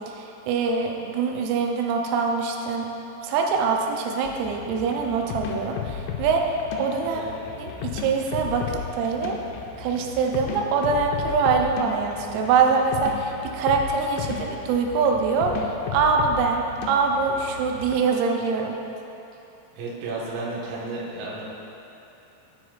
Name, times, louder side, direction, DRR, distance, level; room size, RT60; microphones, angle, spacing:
voice 1, 0.1-2.9 3.2-7.3 7.6-9.4 9.8-18.8, right 5 dB, 90° right, 2 dB, 3.4 m, -24 dB
sound 1, 4.2-18.0, left 7 dB, 85° left, 3.2 m, -35 dB
voice 2, 6.9-7.3 19.7-21.4, right 3 dB, 60° right, -6 dB, 2.5 m, -33 dB
13.0 x 9.1 x 2.5 m, 3.0 s
omnidirectional pair, 5.9 m